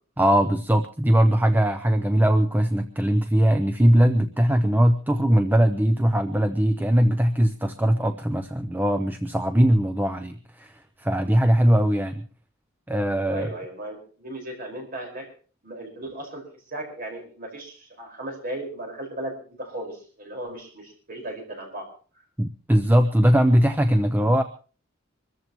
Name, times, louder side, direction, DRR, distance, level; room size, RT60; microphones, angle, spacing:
voice 1, 0.2-12.2 12.9-13.5 22.4-24.4, equal, 10° right, 8 dB, 0.7 m, -20 dB
voice 2, 13.3-15.3 15.6-21.9, right 1 dB, 45° right, 1 dB, 5.1 m, -36 dB
25.0 x 14.0 x 3.1 m, 0.38 s
head